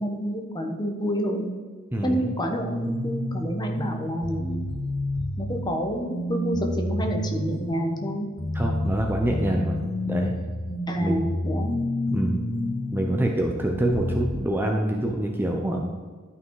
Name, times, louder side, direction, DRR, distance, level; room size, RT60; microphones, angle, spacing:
voice 1, 0.0-1.5 2.0-4.7 5.4-8.3 10.9-11.7, equal, 20° left, 2 dB, 1.2 m, -28 dB
voice 2, 1.9-2.3 8.5-9.8 10.1-10.3 11.0-11.2 12.1-12.4 12.9-15.9, right 1 dB, 10° right, 1 dB, 0.7 m, -25 dB
sound 1, 2.5-14.3, left 1 dB, 75° left, 2.6 m, -30 dB
12.0 x 5.7 x 4.8 m, 1.5 s
head